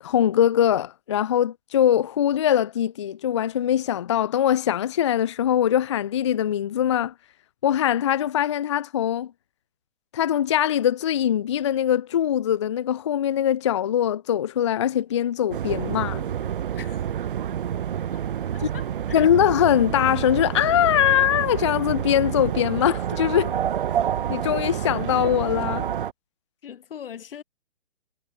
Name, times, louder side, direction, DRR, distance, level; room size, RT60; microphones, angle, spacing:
voice 1, 0.0-7.1 7.6-9.3 10.1-16.2 19.1-23.5 24.3-25.9, left 10 dB, 25° left, 0.6 m, -22 dB
sound 1, 15.5-26.1, right 9 dB, 50° right, 0.8 m, -28 dB
voice 2, 18.5-19.3 26.6-27.4, left 8 dB, 55° left, 3.4 m, -41 dB
hypercardioid pair, 155°, 34 cm